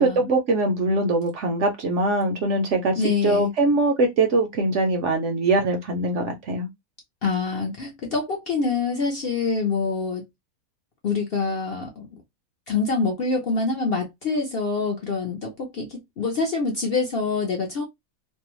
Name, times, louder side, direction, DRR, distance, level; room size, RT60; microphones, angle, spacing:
voice 1, 0.0-2.9 3.2-6.7, right 2 dB, 65° right, 0.8 m, -22 dB
voice 2, 2.9-3.5 7.2-10.2 11.0-12.2 12.7-17.8, left 4 dB, 55° left, 0.7 m, -25 dB
2.6 x 2.1 x 2.9 m
omnidirectional pair, 1.6 m